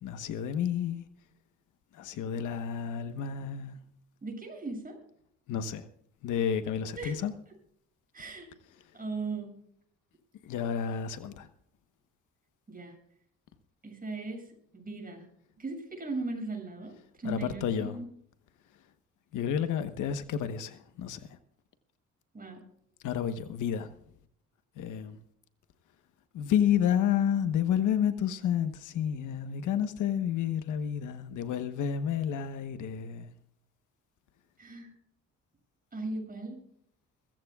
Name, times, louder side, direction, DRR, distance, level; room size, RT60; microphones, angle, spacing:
voice 1, 0.0-1.0 1.9-3.8 5.5-5.9 6.2-7.3 10.4-11.5 17.2-18.0 19.3-21.3 23.0-23.9 24.8-25.2 26.3-33.3, left 9 dB, 80° left, 1.2 m, -30 dB
voice 2, 4.2-5.0 6.9-7.2 8.1-8.5 8.9-9.5 12.7-12.9 13.8-14.5 14.7-15.3 15.6-18.1 22.3-22.6 34.6-34.9 35.9-36.6, right 3 dB, 30° right, 7.5 m, -38 dB
23.5 x 15.5 x 2.4 m
cardioid pair, 90°, 30 cm